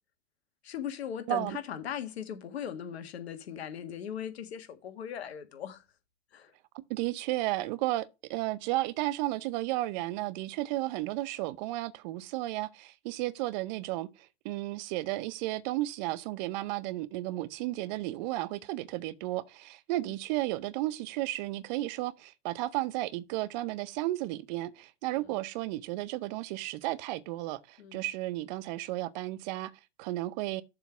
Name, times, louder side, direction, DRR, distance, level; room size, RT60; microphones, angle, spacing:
voice 1, 0.6-5.8 6.3-6.5 20.0-20.1 25.2-25.3 27.8-28.0, left 8 dB, 65° left, 1.7 m, -39 dB
voice 2, 6.7-29.7 30.0-30.6, right 17 dB, 40° right, 0.6 m, -33 dB
7.1 x 3.8 x 5.9 m
hypercardioid pair, 105°, 33 cm